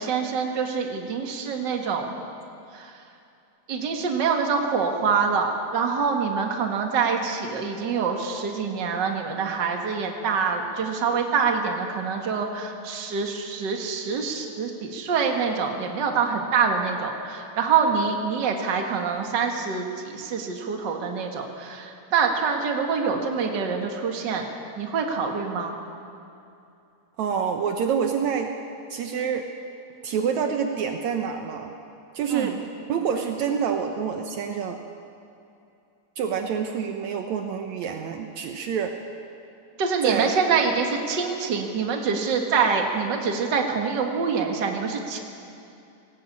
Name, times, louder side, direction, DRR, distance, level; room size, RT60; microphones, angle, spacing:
voice 1, 0.0-2.3 2.7-3.0 3.7-24.5 24.8-25.8 32.3-32.5 39.8-45.2, right 5 dB, 40° right, 2 dB, 2.1 m, -25 dB
voice 2, 27.2-28.5 28.9-29.5 30.0-31.7 32.1-34.8 36.2-39.0 40.0-40.3, right 7 dB, 70° right, 4 dB, 2.2 m, -27 dB
18.0 x 18.0 x 8.6 m, 2.6 s
omnidirectional pair, 3.5 m